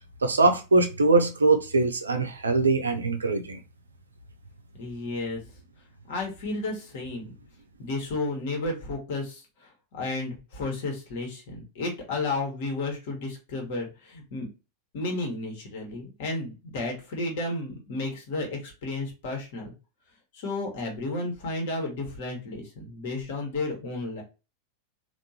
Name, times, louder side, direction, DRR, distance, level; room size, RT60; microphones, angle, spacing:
voice 1, 0.2-3.6, right 3 dB, 75° right, 0.6 m, -22 dB
voice 2, 4.8-5.4 6.1-7.3 7.8-14.5 14.9-19.7 20.3-24.2, left 2 dB, 50° left, 1.4 m, -32 dB
3.6 x 2.6 x 2.8 m
figure-of-eight pair, 90°, 0 cm